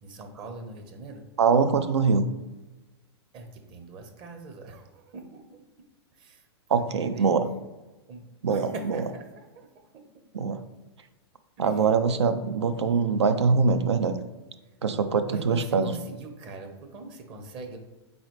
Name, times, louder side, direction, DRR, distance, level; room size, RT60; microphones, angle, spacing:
voice 1, 0.0-1.3 3.3-5.6 6.1-6.4 6.7-7.4 8.1-9.7 9.9-10.2 11.7-11.8 15.3-17.8, right 3 dB, 35° right, 5 dB, 0.7 m, -42 dB
voice 2, 1.4-2.3 6.7-7.5 8.4-9.0 10.3-10.6 11.6-14.2 14.8-15.9, right 5 dB, 85° right, 10 dB, 0.4 m, -23 dB
4.1 x 3.9 x 3.1 m, 1.1 s
hypercardioid pair, 110°, 14 cm